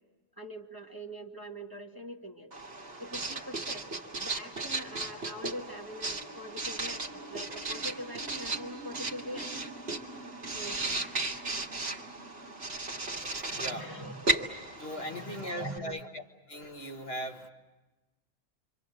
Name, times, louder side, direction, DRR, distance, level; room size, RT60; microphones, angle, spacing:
voice 1, 0.4-2.5 3.0-3.8 4.2-9.7 10.5-11.0 13.3-14.2 15.0-16.0, equal, 15° right, 1 dB, 1.8 m, -43 dB
Writing, 2.5-15.8, right 3 dB, 50° right, 2.0 m, -36 dB
sound 1, 4.5-15.8, right 1 dB, 35° left, 7.5 m, -51 dB
voice 2, 13.2-14.0 14.8-16.2 16.5-17.5, equal, 50° left, 2 dB, 1.8 m, -39 dB
27.5 x 25.5 x 7.7 m, 1.1 s
omnidirectional pair, 1.3 m